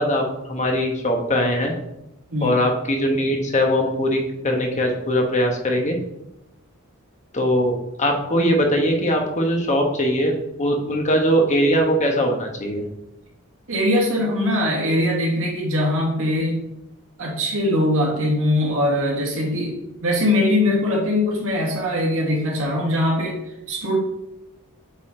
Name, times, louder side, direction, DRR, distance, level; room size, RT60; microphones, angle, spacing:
voice 1, 0.0-1.7 2.4-6.0 7.3-12.8, equal, 35° left, 2 dB, 1.2 m, -21 dB
voice 2, 13.7-16.6 17.2-23.4 23.7-24.0, left 1 dB, 65° right, -2 dB, 2.1 m, -21 dB
8.5 x 4.1 x 3.8 m, 0.88 s
head